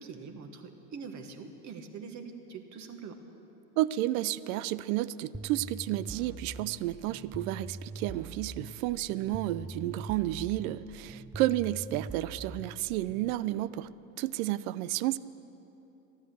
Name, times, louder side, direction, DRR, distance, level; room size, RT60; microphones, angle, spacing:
voice 1, 0.0-3.2, right 5 dB, 40° right, 5 dB, 1.4 m, -44 dB
voice 2, 3.8-13.9 14.2-15.2, right 15 dB, 65° right, 17 dB, 0.6 m, -31 dB
sound 1, 5.3-13.4, right 3 dB, 5° right, 0.3 m, -43 dB
14.0 x 11.0 x 7.9 m, 3.0 s
hypercardioid pair, 95°, 44 cm